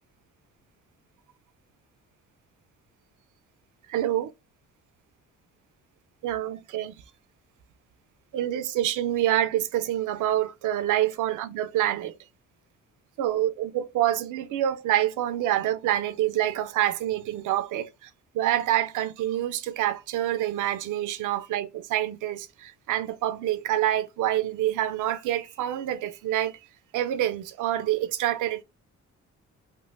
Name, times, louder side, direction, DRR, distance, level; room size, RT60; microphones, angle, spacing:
voice 1, 3.9-4.3 6.2-6.9 8.3-12.1 13.2-18.1 18.3-26.5 26.9-28.6, right 12 dB, 80° right, 0.6 m, -27 dB
3.7 x 2.5 x 2.5 m
cardioid pair, 90°, 30 cm